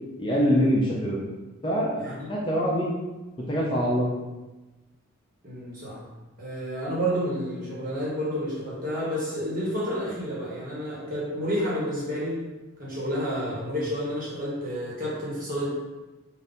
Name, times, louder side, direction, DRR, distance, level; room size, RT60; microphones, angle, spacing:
voice 1, 0.2-1.2 1.6-2.0 2.3-2.9 3.5-4.1, equal, 25° left, -4 dB, 0.6 m, -24 dB
voice 2, 2.0-2.3 5.4-6.0 6.4-12.4 12.8-15.7, equal, 40° right, -7 dB, 1.5 m, -30 dB
3.9 x 2.7 x 3.9 m, 1.1 s
head